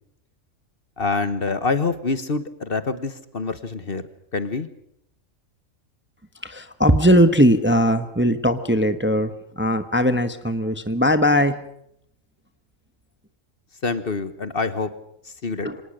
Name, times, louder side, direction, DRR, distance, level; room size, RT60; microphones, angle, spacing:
voice 1, 1.0-4.0 4.3-4.7 13.8-14.9 15.4-15.7, left 4 dB, 45° left, 12 dB, 1.4 m, -26 dB
voice 2, 6.4-11.6 15.6-15.8, equal, 10° right, 10 dB, 1.0 m, -19 dB
26.0 x 19.0 x 6.5 m, 0.74 s
omnidirectional pair, 1.4 m